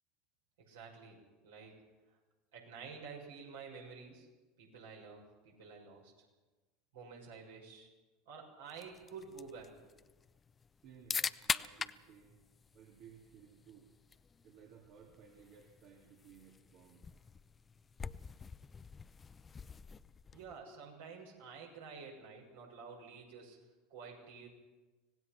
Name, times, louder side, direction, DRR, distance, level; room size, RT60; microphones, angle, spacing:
voice 1, 0.6-2.2 2.5-4.3 4.6-6.1 6.9-7.9 8.2-9.9 20.3-23.6 23.9-24.5, right 5 dB, 75° right, 0 dB, 6.2 m, -50 dB
sound 1, 8.7-20.6, left 5 dB, 25° left, 0.7 m, -44 dB
voice 2, 10.8-12.4 12.7-13.9 14.4-17.1, right 7 dB, 55° right, 1 dB, 2.6 m, -59 dB
25.0 x 18.0 x 6.0 m, 1.3 s
hypercardioid pair, 75°, 0 cm